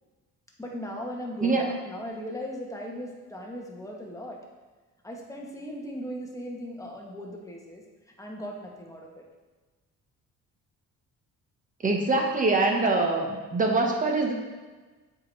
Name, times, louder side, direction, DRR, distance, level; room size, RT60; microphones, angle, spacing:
voice 1, 0.6-4.4 5.0-7.8 8.2-9.2, equal, 10° left, -1 dB, 1.1 m, -38 dB
voice 2, 11.8-14.3, right 3 dB, 25° right, 1 dB, 1.1 m, -24 dB
7.6 x 4.8 x 3.3 m, 1.3 s
cardioid pair, 115°, 32 cm